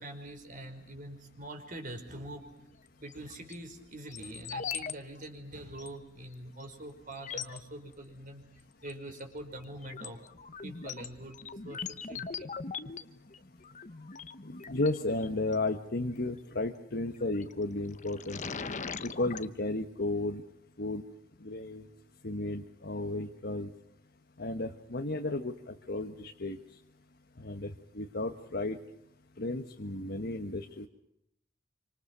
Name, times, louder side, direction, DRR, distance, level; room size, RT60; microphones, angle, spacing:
voice 1, 0.0-2.5 3.0-8.4 8.8-10.2 10.6-11.4 11.6-12.5, right 1 dB, 45° right, 5 dB, 5.3 m, -44 dB
sound 1, 3.1-3.6 4.1-4.9 5.2-5.3 5.8-5.9 6.6-6.7 7.1-7.6 8.8-9.2 9.6-15.5 17.1-17.5 17.9-19.5, left 5 dB, 40° left, 1.1 m, -41 dB
voice 2, 14.4-18.4 19.0-20.4 20.8-21.0 21.4-21.9 22.2-23.7 24.4-26.6 27.4-28.8 29.4-30.9, left 2 dB, 55° left, 4 dB, 1.4 m, -34 dB
27.5 x 26.0 x 6.2 m, 0.77 s
head